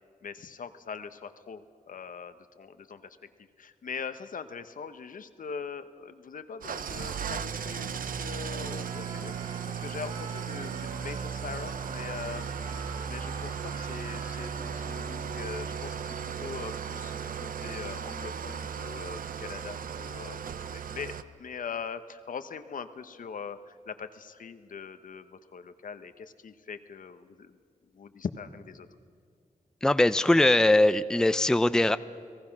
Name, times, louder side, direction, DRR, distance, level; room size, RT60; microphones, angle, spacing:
voice 1, 0.2-27.6 27.9-28.9, left 6 dB, 75° left, 10 dB, 1.0 m, -42 dB
Engine starting / Idling, 6.6-21.2, right 7 dB, 90° right, 0.7 m, -36 dB
Trumpet, 8.4-11.4 11.7-15.8, right 2 dB, 40° right, 1.5 m, -48 dB
voice 2, 29.8-32.0, left 1 dB, 5° left, 13 dB, 0.5 m, -21 dB
30.0 x 19.0 x 6.0 m, 2.2 s
wide cardioid pair, 110°, 14 cm